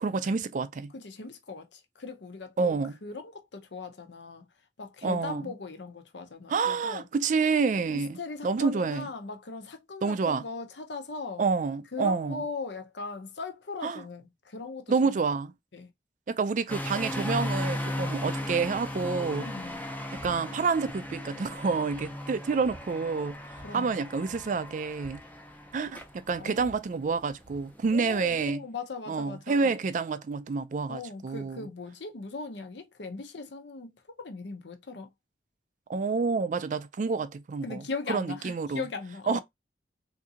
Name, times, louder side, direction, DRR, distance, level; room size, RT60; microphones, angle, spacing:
voice 1, 0.0-0.9 2.6-3.0 5.0-5.5 6.5-9.1 10.0-10.4 11.4-12.4 13.8-14.0 14.9-15.5 16.3-19.5 20.1-23.4 23.7-25.2 25.7-28.6 29.1-31.7 35.9-37.8 38.1-38.9 39.3-39.4, right 4 dB, 45° right, 0.3 m, -28 dB
voice 2, 0.9-4.4 4.8-7.1 7.9-11.4 11.9-15.2 15.7-15.9 19.0-19.8 23.6-23.9 26.4-26.8 27.9-29.8 30.9-33.9 34.2-35.1 37.6-39.4, left 3 dB, 70° left, 0.7 m, -39 dB
sound 1, 16.7-28.5, left 1 dB, 10° left, 0.6 m, -37 dB
sound 2, 20.2-20.4 20.6-21.2 21.6-21.7 21.9-22.9 23.5-23.7 24.0-24.1 24.3-25.9 26.3-27.7, right 1 dB, 25° right, 0.8 m, -51 dB
3.7 x 2.6 x 2.7 m
head